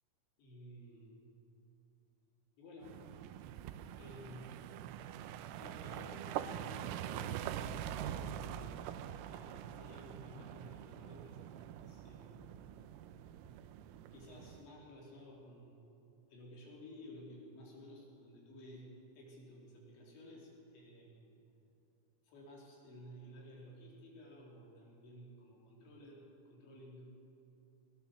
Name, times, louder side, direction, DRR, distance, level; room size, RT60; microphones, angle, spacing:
voice 1, 0.4-1.2 2.6-3.0 4.0-4.6 5.6-8.9 9.3-11.5 11.8-12.4 14.1-15.8 16.3-18.9 19.1-21.3 22.2-27.1, left 1 dB, 60° left, -3 dB, 5.8 m, -54 dB
sound 1, 2.8-14.7, right 10 dB, 85° right, 3.4 m, -44 dB
22.5 x 19.5 x 7.1 m, 2.7 s
omnidirectional pair, 6.0 m